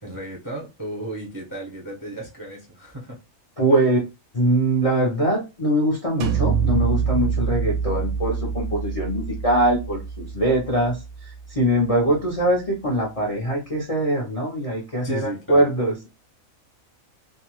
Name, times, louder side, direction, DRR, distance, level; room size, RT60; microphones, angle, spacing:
voice 1, 0.0-3.2 12.1-12.2 15.0-15.6, right 1 dB, 25° right, 0.5 m, -34 dB
voice 2, 3.6-4.0 4.3-16.1, right 1 dB, 40° left, 0.5 m, -22 dB
sound 1, 6.2-11.8, right 6 dB, 65° right, 0.8 m, -26 dB
2.6 x 2.1 x 3.0 m
omnidirectional pair, 1.4 m